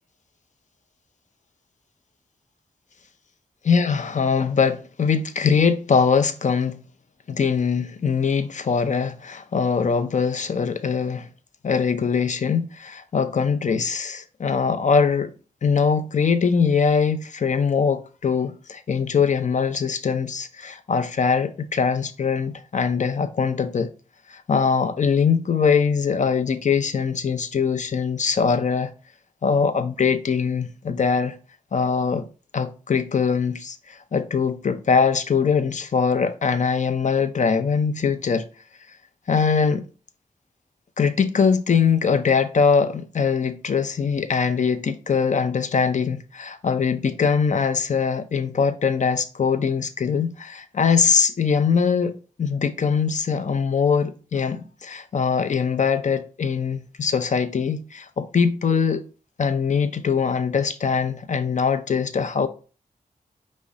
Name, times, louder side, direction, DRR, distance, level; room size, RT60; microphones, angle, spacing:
voice 1, 3.7-6.8 7.3-11.3 11.6-15.3 15.6-23.9 24.3-28.9 29.4-31.4 31.7-32.2 32.5-38.5 39.3-39.8 41.0-59.0 59.4-62.5, left 6 dB, 55° left, 0.5 m, -22 dB
5.3 x 2.1 x 4.7 m
wide cardioid pair, 75°, 15 cm